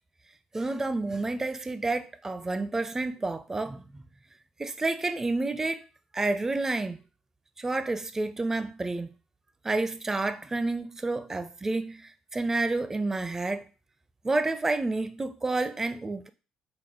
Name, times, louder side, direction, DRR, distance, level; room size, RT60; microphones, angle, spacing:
voice 1, 0.5-3.8 4.6-5.8 6.1-7.0 7.6-9.1 9.6-13.6 14.2-16.3, right 2 dB, 20° right, 0.4 m, -29 dB
4.8 x 2.0 x 4.3 m
figure-of-eight pair, 55°, 3 cm